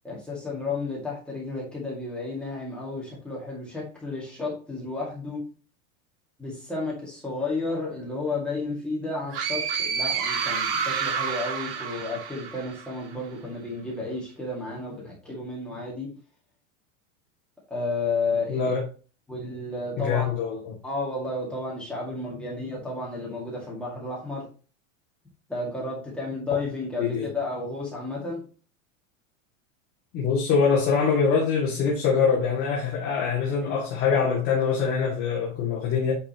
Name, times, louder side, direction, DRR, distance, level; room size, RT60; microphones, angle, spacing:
voice 1, 0.0-5.4 6.4-16.1 17.7-18.6 19.3-20.3 20.8-24.5 25.5-28.4, left 3 dB, 5° left, 2.0 m, -32 dB
sound 1, 9.3-13.0, right 6 dB, 20° right, 0.3 m, -29 dB
voice 2, 18.5-18.8 20.0-20.7 27.0-27.3 30.1-36.1, left 5 dB, 25° left, 1.8 m, -24 dB
8.8 x 5.4 x 2.9 m
supercardioid pair, 175°, 38 cm